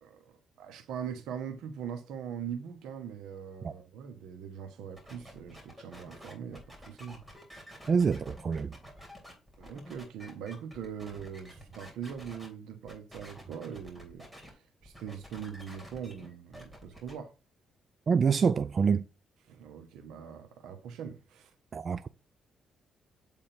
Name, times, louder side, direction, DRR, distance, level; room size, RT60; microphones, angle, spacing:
voice 1, 0.0-7.2 9.6-17.3 19.5-21.5, right 8 dB, 85° right, 1.2 m, -42 dB
sound 1, 5.0-12.5 12.9-14.5 14.8-17.1, equal, 5° right, 3.1 m, -50 dB
voice 2, 7.9-8.8 18.1-19.1 21.7-22.1, right 6 dB, 45° right, 0.3 m, -26 dB
8.1 x 3.6 x 4.4 m
cardioid pair, 90°, 0 cm